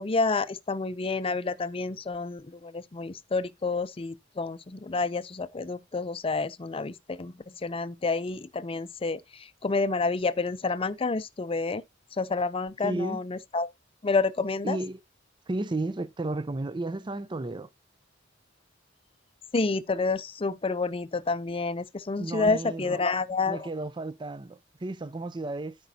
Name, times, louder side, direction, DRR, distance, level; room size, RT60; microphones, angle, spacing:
voice 1, 0.0-11.8 12.2-13.7 14.0-14.8 19.5-23.7, left 3 dB, 30° left, 0.5 m, -29 dB
voice 2, 12.8-13.2 14.6-15.0 15.5-17.7 22.2-23.0 23.5-25.8, right 2 dB, 25° right, 0.5 m, -33 dB
13.5 x 5.1 x 2.7 m
head